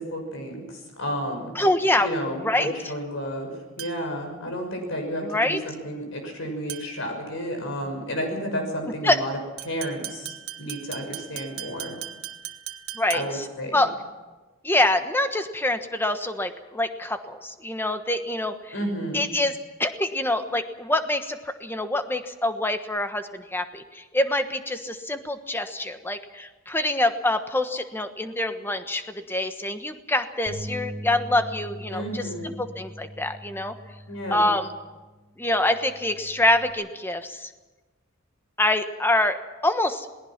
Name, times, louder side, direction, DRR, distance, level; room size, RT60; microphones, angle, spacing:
voice 1, 0.0-1.5 2.0-9.4 9.6-10.3 10.6-12.0 13.1-13.9 18.7-19.3 31.9-32.5 34.1-34.5, equal, 65° left, 4 dB, 6.1 m, -32 dB
voice 2, 1.5-2.1 2.4-2.7 5.2-5.6 9.0-9.2 12.9-13.4 13.7-13.9 14.6-18.7 19.1-33.7 34.3-34.7 35.4-37.5 38.6-39.4 39.6-40.1, left 1 dB, 10° left, 8 dB, 1.2 m, -25 dB
sound 1, 3.8-4.2 6.7-7.1 9.6-13.5, right 11 dB, 85° right, 1.4 m, -38 dB
Bass guitar, 30.5-36.7, equal, 30° right, 4.4 m, -41 dB
27.5 x 18.5 x 6.0 m, 1.2 s
head